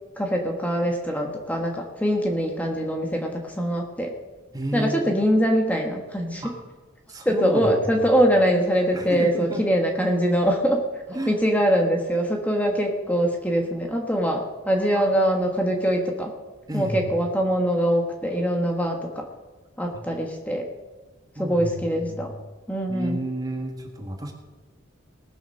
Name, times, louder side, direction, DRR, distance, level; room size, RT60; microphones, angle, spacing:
voice 1, 0.2-4.1 4.7-6.4 7.2-10.8 11.3-16.4 16.7-19.2 19.8-20.6 21.4-22.3 22.7-23.2, equal, 5° left, 2 dB, 1.3 m, -23 dB
voice 2, 4.5-5.3 6.4-6.6 7.1-8.1 8.9-9.6 11.1-11.3 14.9-15.1 16.7-17.1 19.9-20.0 21.3-22.3 22.9-24.3, right 1 dB, 20° right, 3 dB, 1.5 m, -32 dB
19.0 x 7.1 x 6.5 m, 1.2 s
head